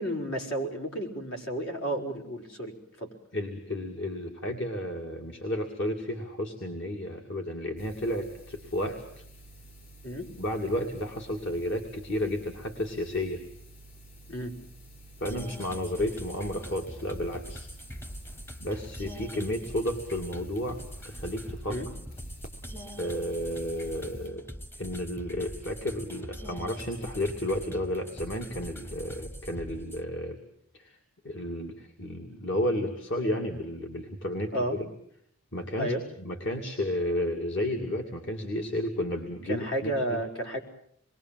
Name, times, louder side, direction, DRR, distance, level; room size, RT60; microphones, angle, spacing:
voice 1, 0.0-2.7 3.0-3.1 10.0-10.3 14.3-14.5 21.7-21.9 34.5-34.8 35.8-36.0 39.5-40.6, right 1 dB, 75° left, 1 dB, 5.1 m, -32 dB
voice 2, 3.3-9.2 10.4-13.4 15.2-17.7 18.6-21.8 23.0-24.4 24.8-30.4 30.7-31.0 31.2-34.9 35.5-40.2, left 1 dB, 60° left, 1 dB, 2.5 m, -32 dB
sound 1, 7.8-24.3, right 1 dB, 40° left, 4.1 m, -51 dB
sound 2, 15.2-30.0, equal, 10° left, 1.0 m, -43 dB
27.5 x 22.0 x 7.6 m, 0.69 s
head